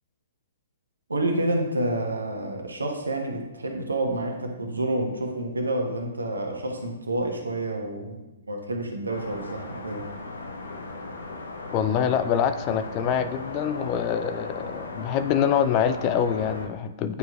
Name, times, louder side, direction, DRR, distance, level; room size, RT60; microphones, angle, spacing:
voice 1, 1.1-8.2 8.5-10.1, right 1 dB, 80° right, 2 dB, 1.0 m, -28 dB
sound 1, 9.1-16.6, left 3 dB, 70° left, 0.7 m, -37 dB
voice 2, 11.7-17.2, left 8 dB, 30° left, 10 dB, 0.3 m, -25 dB
9.2 x 4.6 x 2.3 m, 1.0 s
figure-of-eight pair, 120°, 0 cm